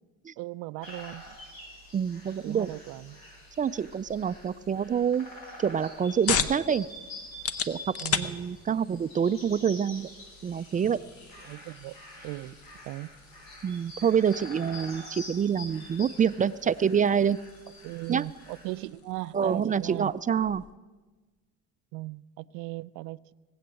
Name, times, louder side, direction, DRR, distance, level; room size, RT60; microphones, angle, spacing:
voice 1, 0.4-1.4 2.4-3.2 6.3-6.5 8.0-8.4 8.7-8.8 11.4-12.0 12.2-12.6 12.8-13.1 17.8-20.1 21.9-23.3, right 20 dB, 85° right, 0.5 m, -38 dB
sound 1, 0.8-18.8, left 1 dB, 85° left, 4.3 m, -46 dB
voice 2, 1.9-2.7 3.6-5.3 5.6-6.9 7.7-7.8 8.2-10.1 10.4-11.0 13.6-17.4 18.1-18.2 19.3-20.6, right 7 dB, 25° right, 0.3 m, -26 dB
sound 2, 5.6-20.8, left 7 dB, 50° left, 0.9 m, -38 dB
19.5 x 8.0 x 7.6 m
supercardioid pair, 90°, 31 cm